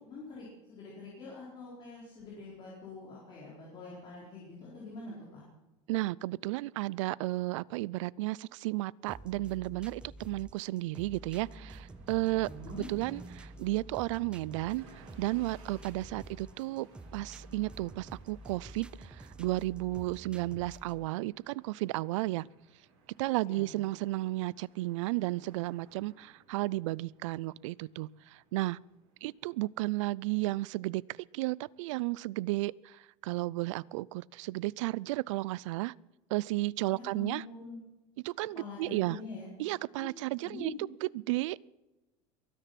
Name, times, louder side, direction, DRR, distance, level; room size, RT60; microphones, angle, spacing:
voice 1, 0.0-5.4 12.3-12.9 23.4-23.7 36.9-37.8 38.5-39.5 40.0-40.1 40.4-40.8, left 3 dB, 30° left, -5 dB, 4.7 m, -45 dB
voice 2, 5.9-22.5 23.2-28.8 29.2-31.0 31.3-35.9 36.3-37.4 38.2-39.2 39.6-40.7 41.0-41.6, right 19 dB, 90° right, 25 dB, 0.4 m, -33 dB
sound 1, 9.1-21.1, right 1 dB, 5° right, 0.5 m, -49 dB
sound 2, 11.1-29.7, right 3 dB, 70° right, 7.2 m, -58 dB
22.5 x 10.0 x 5.9 m, 1.1 s
cardioid pair, 165°, 15 cm